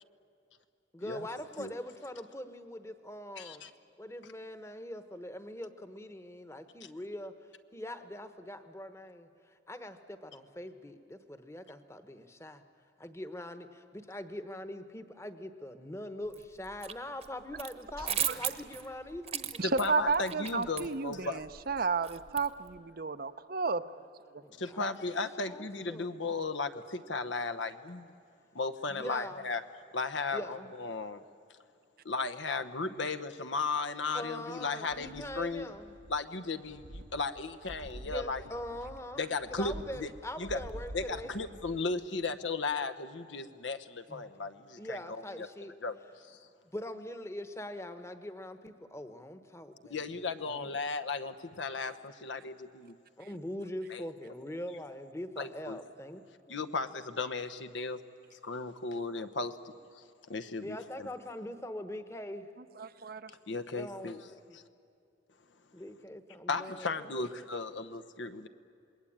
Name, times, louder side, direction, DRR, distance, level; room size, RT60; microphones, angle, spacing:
voice 1, 0.9-3.6 4.0-7.3 7.7-12.6 13.0-19.6 24.4-24.9 25.4-26.2 28.9-29.5 30.3-30.7 34.1-35.9 38.0-39.2 39.5-41.4 44.1-44.3 44.8-45.7 46.7-50.0 50.5-50.7 53.2-56.6 60.6-62.5 63.7-64.6 65.7-67.8, left 1 dB, 15° left, 10 dB, 1.1 m, -42 dB
voice 2, 3.4-3.7 19.6-21.5 24.6-28.1 28.5-29.6 29.9-31.2 32.0-35.7 36.1-38.4 39.2-39.7 40.0-40.1 40.4-40.6 40.9-45.5 45.8-46.4 49.9-52.9 53.9-54.0 55.4-55.8 56.5-58.0 58.3-59.5 60.0-60.1 60.3-61.1 63.5-64.3 64.5-64.6 66.5-68.5, left 3 dB, 75° left, 11 dB, 1.0 m, -35 dB
sound 1, 16.3-16.9 17.2-22.8, right 10 dB, 35° right, 1.1 m, -37 dB
voice 3, 19.6-24.0 24.3-24.4 62.8-63.3, right 4 dB, 50° right, 11 dB, 0.7 m, -32 dB
sound 2, 34.9-36.3 36.6-41.9 42.3-42.4, right 1 dB, 80° right, 1.2 m, -48 dB
27.5 x 21.0 x 8.8 m, 2.6 s
head